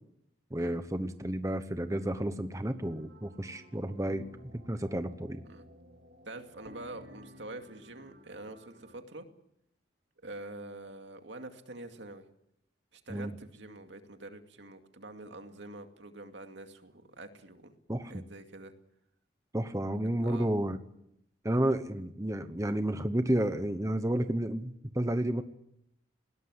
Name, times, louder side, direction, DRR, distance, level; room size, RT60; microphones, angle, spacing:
voice 1, 0.5-4.3 4.5-5.4 13.1-13.3 17.9-18.2 19.5-20.8 21.4-25.4, right 1 dB, 15° right, 9 dB, 1.0 m, -31 dB
sound 1, 2.8-9.0, equal, 60° right, 2.5 m, -54 dB
voice 2, 6.2-9.2 10.2-12.3 12.9-17.7 18.0-18.7 20.0-20.5, right 2 dB, 80° right, 6 dB, 2.3 m, -46 dB
20.5 x 17.5 x 9.8 m, 0.78 s
head